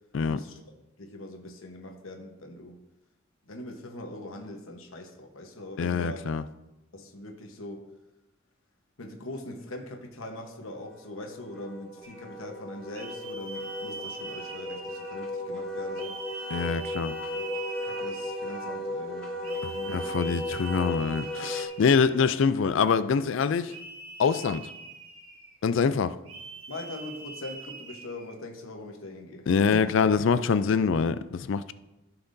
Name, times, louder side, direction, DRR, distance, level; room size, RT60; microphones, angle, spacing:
voice 1, 0.3-0.6 1.0-2.8 3.5-6.3 6.9-7.9 9.0-16.2 17.3-17.4 17.8-20.4 22.1-22.3 26.7-29.9, left 1 dB, 90° left, 1.1 m, -41 dB
voice 2, 5.8-6.4 16.5-17.1 19.6-23.7 24.2-24.7 25.6-26.2 29.5-31.7, left 5 dB, 65° left, 0.4 m, -25 dB
Wind instrument woodwind instrument, 10.7-21.7, left 1 dB, 5° left, 2.6 m, -36 dB
sound 1, 12.0-12.3 12.9-15.3 15.9-18.7 19.4-22.2 23.7-25.6 26.2-28.3, right 3 dB, 80° right, 1.7 m, -43 dB
15.0 x 5.9 x 2.7 m
head